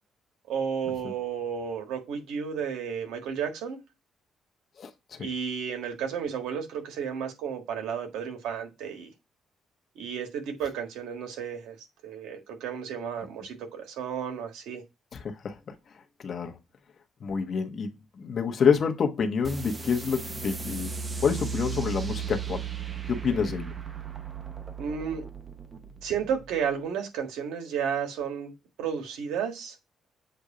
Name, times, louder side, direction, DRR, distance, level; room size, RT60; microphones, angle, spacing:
voice 1, 0.5-3.8 5.2-9.1 9.9-11.8 12.0-14.8 24.8-25.2 26.0-28.5 28.8-29.7, right 7 dB, 90° right, 1.6 m, -32 dB
voice 2, 4.8-5.3 15.1-15.8 16.2-16.6 17.2-17.9 18.1-20.9 21.2-22.7 23.1-23.8, left 6 dB, 55° left, 1.1 m, -27 dB
sound 1, 19.4-26.6, right 6 dB, 30° right, 0.9 m, -36 dB
7.9 x 2.7 x 4.9 m
cardioid pair, 90°, 0 cm